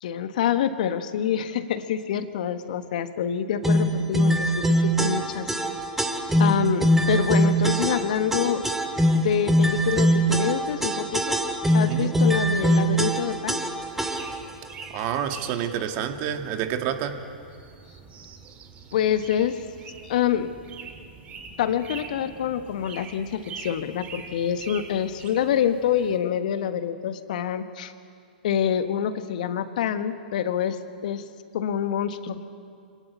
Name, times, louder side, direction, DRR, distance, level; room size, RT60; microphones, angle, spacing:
voice 1, 0.0-5.5 6.4-8.6 9.1-11.4 11.7-13.6 18.9-19.7 20.0-20.5 21.6-27.9 28.4-31.2 31.5-32.4, left 9 dB, 60° left, 10 dB, 1.3 m, -26 dB
sound 1, 3.6-14.5, right 1 dB, 5° right, 2.1 m, -22 dB
sound 2, 13.9-26.2, right 5 dB, 30° right, 2.6 m, -44 dB
voice 2, 14.9-17.1, right 9 dB, 45° right, 6 dB, 2.0 m, -28 dB
26.0 x 18.0 x 8.4 m, 2.3 s
hypercardioid pair, 105°, 5 cm